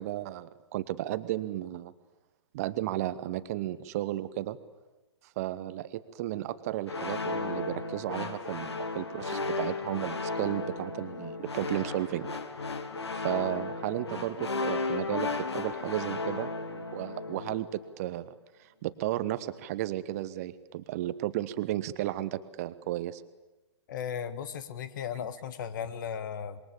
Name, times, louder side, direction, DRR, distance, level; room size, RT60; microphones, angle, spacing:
voice 1, 0.0-1.9 2.5-4.6 5.4-12.3 13.1-18.3 18.6-23.2, right 14 dB, 35° right, 14 dB, 1.1 m, -34 dB
sound 1, 6.9-17.8, left 3 dB, 65° left, 2.4 m, -34 dB
voice 2, 23.9-26.6, left 8 dB, 45° left, 13 dB, 1.7 m, -36 dB
26.5 x 22.0 x 8.7 m, 1.1 s
figure-of-eight pair, 120°, 15 cm